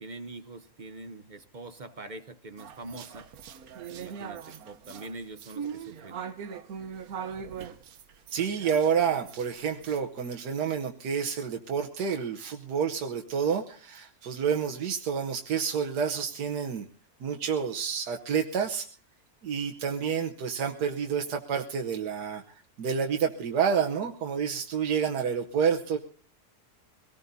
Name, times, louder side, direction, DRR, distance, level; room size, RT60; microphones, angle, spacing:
voice 1, 0.0-3.3 3.9-6.2, right 2 dB, 35° right, 9 dB, 0.8 m, -43 dB
sound 1, 2.6-10.0, right 7 dB, 65° right, 1.3 m, -41 dB
voice 2, 8.3-16.9 17.2-18.9 19.4-22.4 22.8-26.0, right 7 dB, 90° right, 3 dB, 1.5 m, -29 dB
23.5 x 18.0 x 2.7 m, 0.43 s
omnidirectional pair, 1.7 m